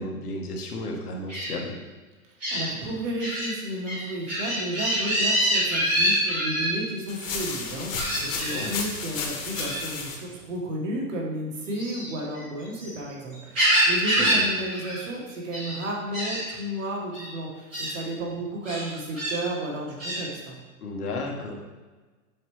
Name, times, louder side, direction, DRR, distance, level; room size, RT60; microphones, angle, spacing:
voice 1, 0.0-1.7 8.2-8.7 14.2-14.5 20.8-21.5, left 2 dB, 90° left, 0 dB, 1.4 m, -33 dB
Gull seagull, 1.3-1.5 2.4-2.6 3.2-3.5 3.8-6.7 7.9-8.6 9.5-9.8 11.7-12.9 13.3-14.4 14.7-15.0 15.3-15.8 16.1-16.4 17.1-17.3 17.7-17.9 18.6-19.3 20.0-20.2, equal, 5° right, 0.5 m, -26 dB
voice 2, 2.5-20.6, right 1 dB, 60° right, -2 dB, 1.5 m, -33 dB
sound 1, 7.1-10.2, left 4 dB, 60° left, 1.3 m, -33 dB
7.2 x 4.2 x 3.1 m, 1.3 s
hypercardioid pair, 180°, 44 cm